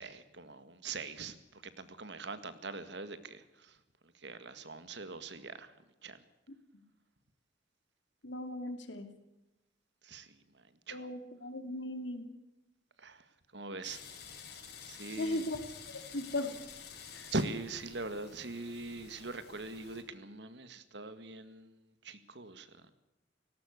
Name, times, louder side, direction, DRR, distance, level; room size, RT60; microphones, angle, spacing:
voice 1, 0.0-3.8 4.0-5.7 6.0-6.2 10.0-11.1 13.0-14.0 14.9-15.4 17.3-22.8, right 3 dB, 65° right, 11 dB, 1.9 m, -42 dB
voice 2, 8.2-9.1 10.9-12.3 15.2-15.6 15.9-16.5 17.1-17.3, left 1 dB, 75° left, 8 dB, 2.9 m, -37 dB
sound 1, 13.8-20.0, left 6 dB, 55° left, 5.7 m, -50 dB
18.0 x 18.0 x 8.2 m, 0.99 s
head